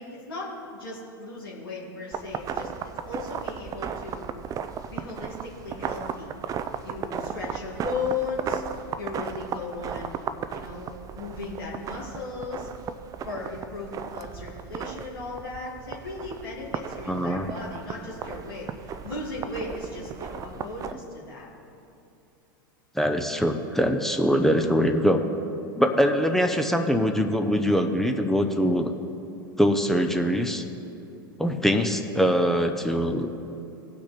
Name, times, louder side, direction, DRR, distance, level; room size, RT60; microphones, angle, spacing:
voice 1, 0.0-2.7 3.1-4.3 4.9-6.3 6.8-8.6 9.0-12.7 13.2-21.5, left 4 dB, 85° left, -5 dB, 2.2 m, -36 dB
sound 1, 2.1-20.9, right 7 dB, 30° right, 0.5 m, -36 dB
voice 2, 17.1-17.5 22.9-25.3 25.7-28.9 29.6-30.6 31.4-33.5, equal, 5° left, 5 dB, 0.7 m, -23 dB
17.5 x 6.1 x 4.2 m, 2.8 s
hypercardioid pair, 95°, 12 cm